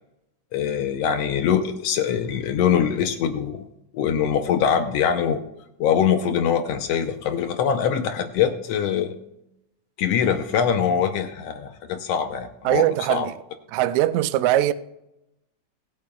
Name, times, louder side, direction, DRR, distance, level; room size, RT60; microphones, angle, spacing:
voice 1, 0.5-3.6 3.9-5.4 5.8-9.1 10.0-12.8 13.1-13.3, left 8 dB, 80° left, 1.4 m, -23 dB
voice 2, 12.6-13.3 13.7-14.7, right 14 dB, 80° right, 1.7 m, -21 dB
20.0 x 8.5 x 2.3 m
omnidirectional pair, 3.9 m